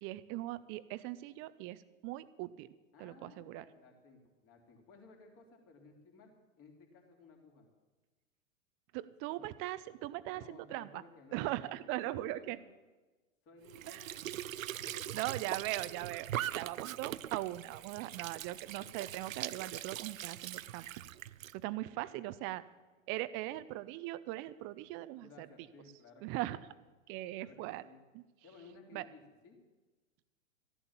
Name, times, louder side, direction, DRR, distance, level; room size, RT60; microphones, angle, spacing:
voice 1, 0.0-2.7 3.0-3.6 8.9-11.0 11.3-12.6 13.9-14.1 15.1-16.3 16.5-20.9 21.5-22.6 23.1-25.5 26.2-26.6 27.1-27.8 28.1-28.2 28.9-29.1, right 16 dB, 30° right, 16 dB, 0.6 m, -40 dB
voice 2, 2.9-7.7 9.2-9.5 10.3-12.6 13.4-15.2 21.9-22.1 23.5-23.6 25.2-26.6 27.4-28.0 28.4-29.6, left 4 dB, 35° left, 2 dB, 3.5 m, -58 dB
Squeak / Sink (filling or washing) / Trickle dribble, 13.6-21.6, right 12 dB, 80° right, 0.6 m, -41 dB
14.5 x 11.0 x 7.3 m, 1.2 s
hypercardioid pair, 110°, 40 cm